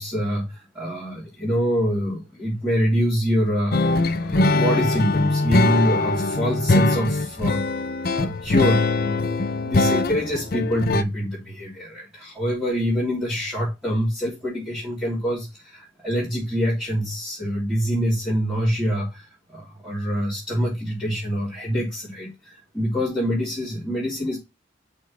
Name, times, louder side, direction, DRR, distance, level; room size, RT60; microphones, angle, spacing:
voice 1, 0.0-3.8 4.1-7.6 8.1-9.2 9.6-24.4, equal, 5° right, 3.3 m, -25 dB
sound 1, 3.7-11.0, left 2 dB, 50° left, 0.7 m, -22 dB
6.2 x 4.5 x 6.0 m
head